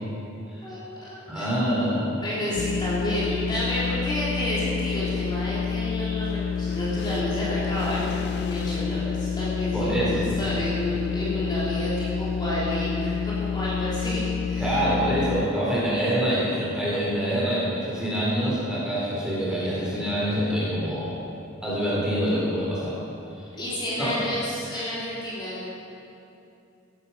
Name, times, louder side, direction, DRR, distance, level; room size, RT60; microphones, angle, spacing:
voice 1, 0.6-1.4 2.2-14.8 23.5-25.7, left 1 dB, 20° left, -9 dB, 3.4 m, -30 dB
voice 2, 1.3-2.2 9.7-10.2 14.6-21.2 21.6-23.0 23.4-23.5 24.0-24.2 24.7-24.9, equal, 5° right, -8 dB, 3.8 m, -26 dB
sound 1, 2.6-15.5, left 6 dB, 55° left, 0.3 m, -28 dB
15.5 x 11.0 x 5.7 m, 2.7 s
head